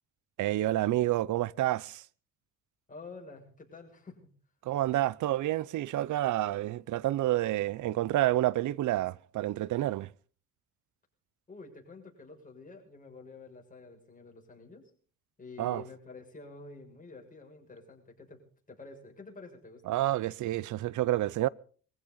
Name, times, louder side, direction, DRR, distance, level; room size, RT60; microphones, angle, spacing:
voice 1, 0.4-2.0 4.6-10.1 15.6-15.8 19.9-21.5, right 15 dB, 75° right, 0.7 m, -29 dB
voice 2, 2.9-4.4 11.5-14.9 15.4-20.0, left 3 dB, 25° left, 6.7 m, -49 dB
22.5 x 15.5 x 4.0 m
cardioid pair, 90°, 30 cm